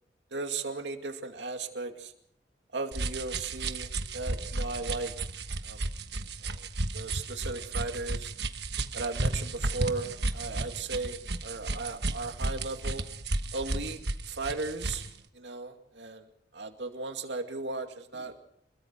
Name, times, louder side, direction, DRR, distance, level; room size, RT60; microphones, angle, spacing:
voice 1, 0.3-2.1 2.7-5.1 5.6-5.8 6.4-6.7 6.9-8.3 8.9-13.0 13.5-14.0 14.3-15.1 15.3-16.3 16.5-18.3, right 3 dB, 80° right, 5 dB, 2.4 m, -36 dB
sound 1, 2.9-15.1, right 2 dB, 65° right, 1.3 m, -33 dB
28.0 x 22.0 x 4.6 m, 0.68 s
head